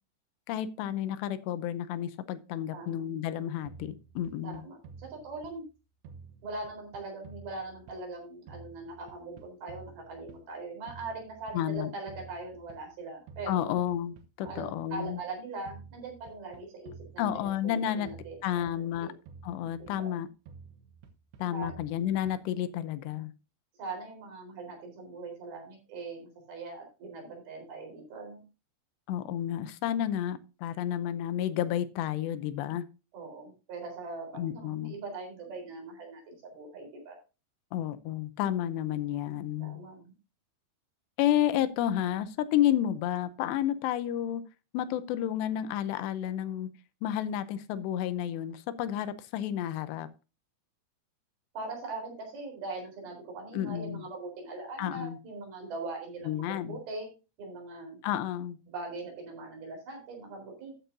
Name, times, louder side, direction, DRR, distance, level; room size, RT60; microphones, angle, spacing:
voice 1, 0.5-4.6 11.5-11.9 13.5-15.2 17.2-18.1 18.4-19.1 19.4-20.3 21.4-23.3 29.1-32.9 34.3-35.0 37.7-39.8 41.2-44.4 44.7-46.7 47.0-50.1 53.5-54.0 54.8-55.2 56.3-56.8 58.0-58.6, left 11 dB, 85° left, 2.9 m, -31 dB
voice 2, 2.7-3.1 4.4-5.6 6.4-13.8 14.4-19.1 19.8-20.1 21.5-21.7 23.8-28.4 33.1-37.2 39.6-40.1 51.5-57.1 57.4-58.0 58.7-60.7, right 3 dB, 60° right, 5.8 m, -41 dB
sound 1, 3.7-5.7 6.0-8.2 8.5-10.6 10.9-13.0 13.3-15.3 15.7-17.8 18.1-20.2 20.5-22.6, right 5 dB, 85° right, 3.1 m, -51 dB
13.5 x 8.4 x 2.6 m
omnidirectional pair, 4.9 m